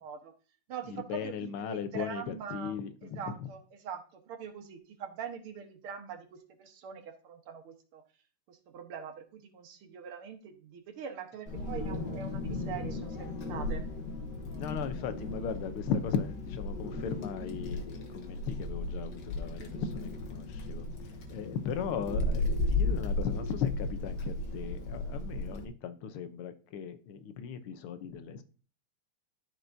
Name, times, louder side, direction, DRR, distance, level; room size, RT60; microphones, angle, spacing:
voice 1, 0.0-0.3 0.7-2.7 3.2-8.0 8.5-13.9, right 7 dB, 75° right, 2.1 m, -43 dB
voice 2, 0.9-3.3 14.5-20.8 21.3-28.4, left 7 dB, 75° left, 1.7 m, -37 dB
Wind, 11.5-25.6, left 2 dB, 55° left, 1.6 m, -35 dB
13.5 x 4.7 x 2.6 m
omnidirectional pair, 2.4 m